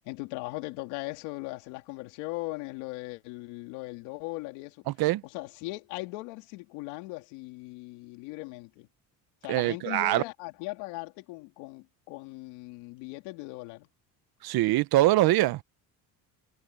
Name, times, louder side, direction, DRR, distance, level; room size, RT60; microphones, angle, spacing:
voice 1, 0.0-4.8 5.2-8.9 9.4-13.9, left 22 dB, 85° left, 3.3 m, -39 dB
voice 2, 4.9-5.2 9.5-10.2 14.4-15.6, right 17 dB, 65° right, 1.1 m, -23 dB
supercardioid pair, 85°, 40 cm